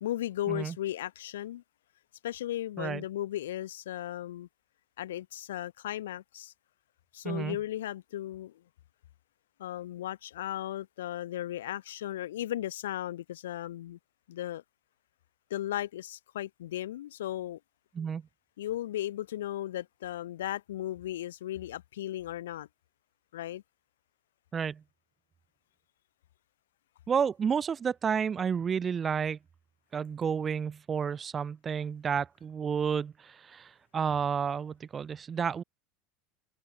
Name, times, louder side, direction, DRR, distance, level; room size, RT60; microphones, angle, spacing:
voice 1, 0.0-1.6 2.2-4.5 5.0-6.5 7.1-8.6 9.6-14.0 14.3-14.6 15.5-17.6 18.6-22.7 23.3-23.6, left 13 dB, 85° left, 1.1 m, -36 dB
voice 2, 7.2-7.6 17.9-18.2 24.5-24.8 27.1-29.4 29.9-35.6, right 7 dB, 30° right, 1.0 m, -31 dB
open air
hypercardioid pair, 95°, 0 cm